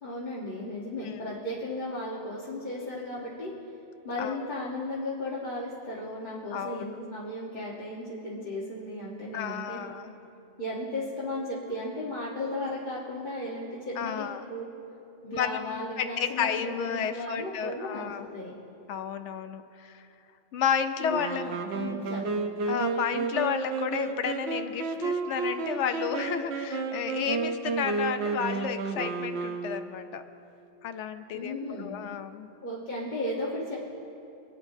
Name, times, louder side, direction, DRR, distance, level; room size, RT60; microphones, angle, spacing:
voice 1, 0.0-3.5 4.0-9.8 10.6-14.7 15.2-18.0 18.3-18.6 21.0-22.5 31.3-31.9 32.6-33.8, left 1 dB, 45° left, -7 dB, 1.4 m, -35 dB
voice 2, 4.2-4.7 6.5-6.9 9.3-10.1 14.0-14.4 15.3-18.3 18.9-20.0 20.5-21.4 22.6-30.2 30.8-32.5, left 7 dB, 85° left, 9 dB, 0.9 m, -32 dB
Wind instrument woodwind instrument, 21.1-30.1, right 4 dB, 65° right, 1.0 m, -31 dB
26.0 x 9.2 x 2.7 m, 2.8 s
omnidirectional pair, 1.2 m